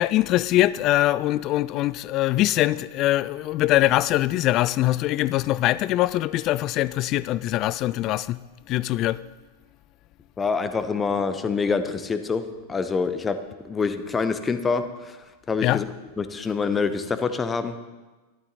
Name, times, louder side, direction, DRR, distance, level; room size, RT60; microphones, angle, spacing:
voice 1, 0.0-8.4 8.7-9.2 15.6-15.8, left 15 dB, 35° left, 0.4 m, -22 dB
voice 2, 10.4-12.4 12.7-13.4 13.6-14.8 15.5-15.9 16.2-17.8, left 5 dB, 15° left, 0.9 m, -25 dB
12.5 x 12.0 x 4.1 m
figure-of-eight pair, 90°, 0 cm